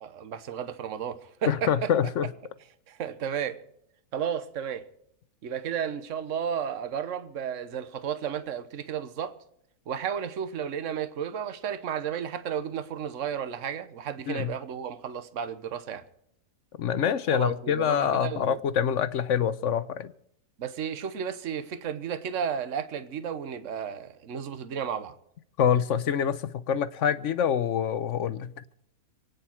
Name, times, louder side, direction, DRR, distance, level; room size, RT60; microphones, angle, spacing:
voice 1, 0.0-2.1 2.9-3.6 4.1-4.8 5.4-9.4 9.9-16.0 17.3-18.6 20.6-25.2, right 8 dB, 55° right, 1.3 m, -33 dB
voice 2, 1.5-2.3 14.3-14.5 16.8-20.1 25.6-28.5, left 8 dB, 55° left, 1.0 m, -26 dB
27.5 x 9.5 x 4.5 m
omnidirectional pair, 1.7 m